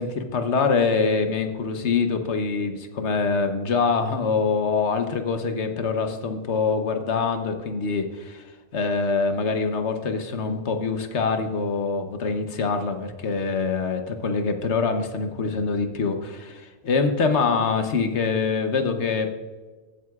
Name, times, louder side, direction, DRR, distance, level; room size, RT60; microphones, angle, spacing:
voice 1, 0.0-8.4 8.7-19.3, left 4 dB, 75° left, 7 dB, 1.2 m, -24 dB
15.0 x 7.6 x 2.4 m, 1.3 s
omnidirectional pair, 1.2 m